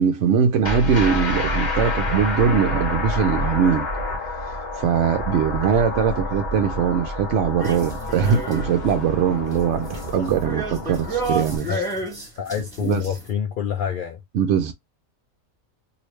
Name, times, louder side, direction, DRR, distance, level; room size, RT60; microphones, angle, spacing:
voice 1, 0.0-3.9 4.4-11.8 12.8-13.1 14.3-14.7, right 7 dB, 70° right, 0.8 m, -21 dB
sound 1, 0.6-11.6, left 2 dB, 35° left, 1.0 m, -28 dB
sound 2, 7.6-8.9 9.3-13.3, right 2 dB, 15° right, 1.3 m, -31 dB
voice 2, 12.4-14.2, left 8 dB, 65° left, 0.5 m, -26 dB
3.1 x 2.7 x 3.1 m
omnidirectional pair, 1.4 m